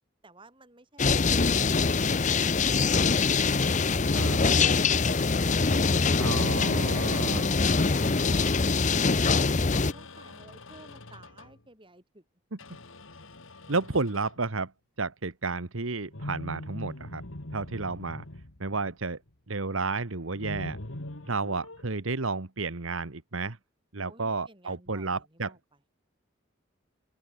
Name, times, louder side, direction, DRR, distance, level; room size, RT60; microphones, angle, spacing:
voice 1, 0.2-3.0 5.9-12.2 24.1-25.6, right 2 dB, 25° right, 6.0 m, -53 dB
sound 1, 1.0-9.9, left 4 dB, 35° left, 0.8 m, -24 dB
voice 2, 4.1-4.4 6.2-7.4 13.7-14.7 15.0-17.2 17.5-18.2 18.6-19.2 19.5-20.8 21.3-23.6 23.9-25.5, right 3 dB, 75° right, 1.5 m, -31 dB
sound 2, 4.5-6.8 7.8-8.8 9.7-11.6 12.6-14.5 16.1-19.3 20.3-21.8, left 1 dB, 75° left, 2.5 m, -43 dB
open air
head